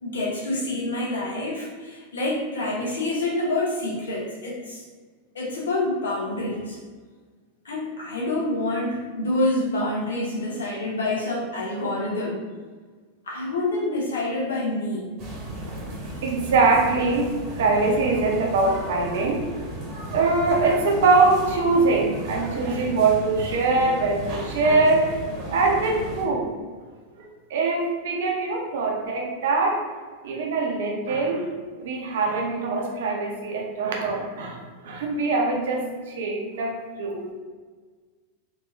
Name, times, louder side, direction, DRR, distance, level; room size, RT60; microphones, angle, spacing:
voice 1, 0.0-4.8 5.3-6.8 7.6-12.4 13.3-15.1, left 2 dB, 70° left, -3 dB, 0.9 m, -27 dB
sound 1, 15.2-26.3, right 1 dB, 35° right, 0.9 m, -35 dB
voice 2, 16.2-19.5 20.1-25.2 25.5-26.5 27.2-29.9 30.2-31.5 31.8-37.3, right 3 dB, 60° right, 0 dB, 0.6 m, -23 dB
3.7 x 2.7 x 2.5 m, 1.5 s
figure-of-eight pair, 90°, 0 cm